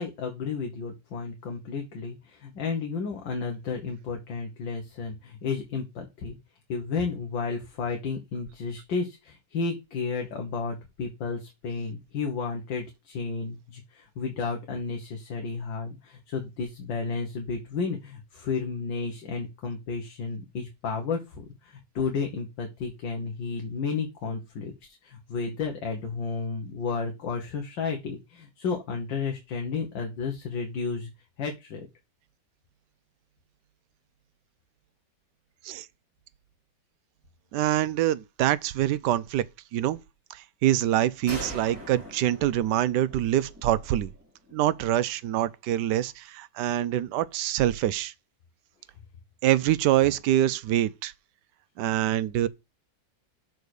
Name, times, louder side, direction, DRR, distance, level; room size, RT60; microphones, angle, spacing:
voice 1, 0.0-6.4 6.7-31.1 31.4-31.9, left 4 dB, 80° left, 2.0 m, -32 dB
voice 2, 37.5-39.4 39.7-40.0 40.3-44.1 44.5-48.1 49.4-51.1 51.8-52.5, right 12 dB, 75° right, 1.1 m, -25 dB
sound 1, 41.3-44.8, equal, 5° right, 2.5 m, -42 dB
6.7 x 4.7 x 6.4 m
omnidirectional pair, 2.0 m